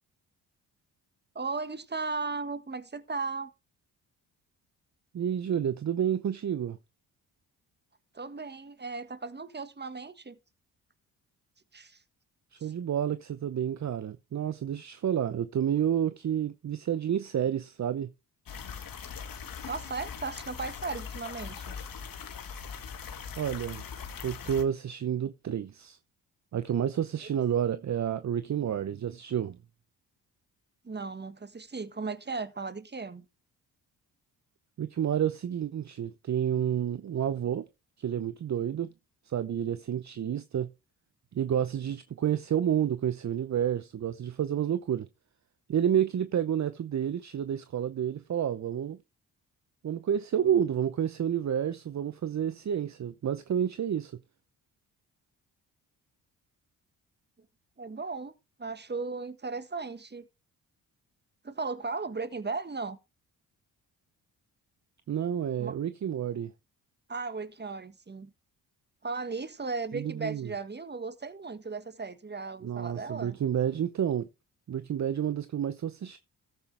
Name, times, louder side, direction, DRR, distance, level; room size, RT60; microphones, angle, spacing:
voice 1, 1.3-3.5 8.1-10.4 11.7-12.0 12.6-12.7 19.7-21.8 30.8-33.2 57.8-58.3 58.6-60.3 61.4-63.0 65.6-65.8 67.1-68.3 69.0-73.4, right 4 dB, 25° right, 1.6 m, -36 dB
voice 2, 5.1-6.8 12.5-18.1 23.4-23.8 24.2-26.0 26.5-29.6 34.8-37.6 38.0-38.9 39.3-40.7 41.3-45.1 45.7-49.0 49.8-54.1 65.1-66.5 69.9-70.5 72.6-74.3 74.7-76.2, right 9 dB, 45° right, 0.8 m, -30 dB
sound 1, 18.5-24.6, left 7 dB, 55° left, 1.9 m, -41 dB
13.5 x 8.2 x 3.4 m
supercardioid pair, 55°, 39 cm